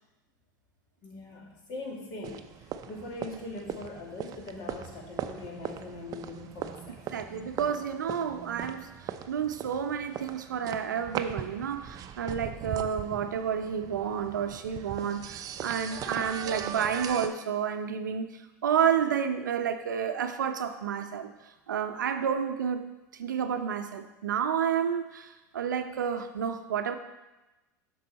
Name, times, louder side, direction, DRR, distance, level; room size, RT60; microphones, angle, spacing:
voice 1, 1.0-7.0, left 2 dB, 50° left, -1 dB, 2.3 m, -41 dB
sound 1, 2.2-17.3, right 9 dB, 40° right, 0.5 m, -39 dB
voice 2, 7.1-21.3 21.7-22.9 23.1-26.9, right 8 dB, 90° right, 8 dB, 0.6 m, -30 dB
7.7 x 6.0 x 4.2 m, 1.0 s
hypercardioid pair, 95°, 10 cm